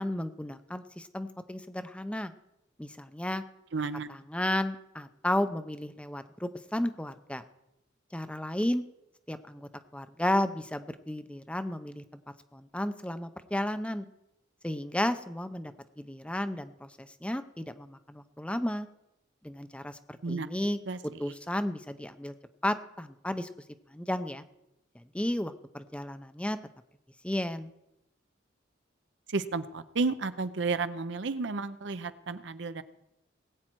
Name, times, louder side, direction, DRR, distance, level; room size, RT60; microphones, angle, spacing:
voice 1, 0.0-2.3 2.8-3.4 3.8-7.4 8.1-8.8 9.3-12.0 12.5-14.0 14.6-18.9 19.4-22.3 22.6-23.5 23.9-24.4 24.9-26.6 27.2-27.7, left 1 dB, 5° left, 10 dB, 0.5 m, -33 dB
voice 2, 3.7-4.1 20.2-20.5 20.9-21.0 29.3-32.8, right 4 dB, 65° right, 12 dB, 0.6 m, -32 dB
20.0 x 8.8 x 4.6 m, 0.87 s
head